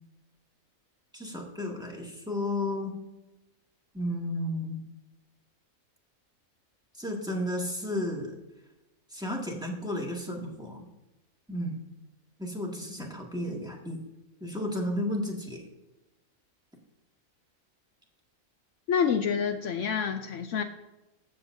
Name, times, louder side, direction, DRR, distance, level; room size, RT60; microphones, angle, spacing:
voice 1, 1.1-3.0 3.9-4.8 7.0-8.4 9.1-10.9 11.5-11.8 12.4-14.0 14.4-15.6, left 1 dB, 5° right, -2 dB, 1.8 m, -33 dB
voice 2, 18.9-20.6, left 7 dB, 70° left, 8 dB, 0.9 m, -27 dB
14.5 x 7.9 x 2.7 m, 1.0 s
omnidirectional pair, 1.4 m